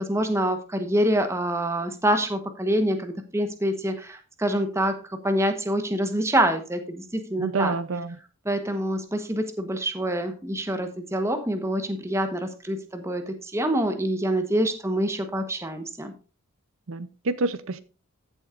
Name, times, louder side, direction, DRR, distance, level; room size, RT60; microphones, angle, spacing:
voice 1, 0.0-7.7 8.4-16.1, right 1 dB, 15° right, 7 dB, 1.1 m, -26 dB
voice 2, 7.4-8.2 16.9-17.8, right 3 dB, 70° right, 14 dB, 0.6 m, -28 dB
15.0 x 7.1 x 2.5 m, 0.34 s
head